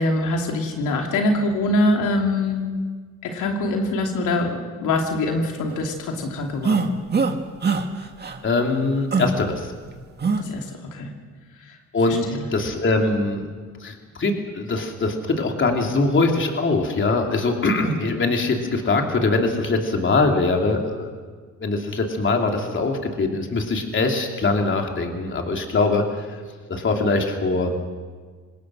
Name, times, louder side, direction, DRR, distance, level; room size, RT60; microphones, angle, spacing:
voice 1, 0.0-2.7 3.2-6.9 10.4-11.1 11.6-11.8 12.1-12.5, left 2 dB, 85° left, 2 dB, 2.9 m, -24 dB
sound 1, 6.6-7.4 7.6-7.8 8.2-8.4 9.1-9.3 10.2-10.4, right 4 dB, 35° right, 1.9 m, -21 dB
voice 2, 8.4-9.7 11.9-13.4 13.8-21.1 21.6-26.2 26.7-27.7, left 3 dB, 40° left, 2 dB, 3.3 m, -22 dB
26.5 x 19.5 x 6.4 m, 1.5 s
cardioid pair, 90°, 30 cm